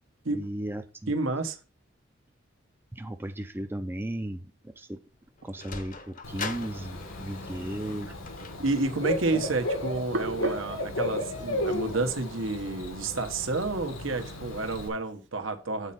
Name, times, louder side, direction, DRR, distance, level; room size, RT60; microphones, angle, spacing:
voice 1, 0.3-1.1 2.9-5.0 5.4-8.1, right 1 dB, 10° right, 7 dB, 0.4 m, -36 dB
voice 2, 1.1-1.6 8.6-15.9, right 3 dB, 80° right, 6 dB, 1.2 m, -30 dB
Sliding door, 5.1-11.7, left 4 dB, 40° left, 0.8 m, -44 dB
Bird / Cricket, 6.2-14.9, left 1 dB, 85° left, 1.5 m, -35 dB
Hands, 10.0-15.3, right 1 dB, 60° right, 0.8 m, -40 dB
8.1 x 4.3 x 5.7 m, 0.34 s
head